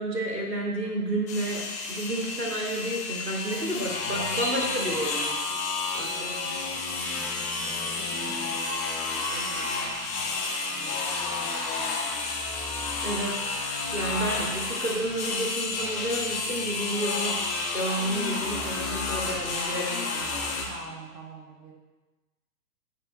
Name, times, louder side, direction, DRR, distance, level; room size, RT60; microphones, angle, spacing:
voice 1, 0.0-5.4 5.9-6.1 13.0-13.5 13.9-17.4 17.7-20.4, right 1 dB, 80° right, -1 dB, 2.1 m, -31 dB
sound 1, 1.3-20.6, left 3 dB, 15° left, 0.9 m, -31 dB
voice 2, 3.4-4.3 6.1-12.1 19.2-19.6 20.6-21.7, right 2 dB, 10° right, -2 dB, 0.5 m, -46 dB
17.5 x 5.9 x 2.2 m, 1.2 s
figure-of-eight pair, 115°, 48 cm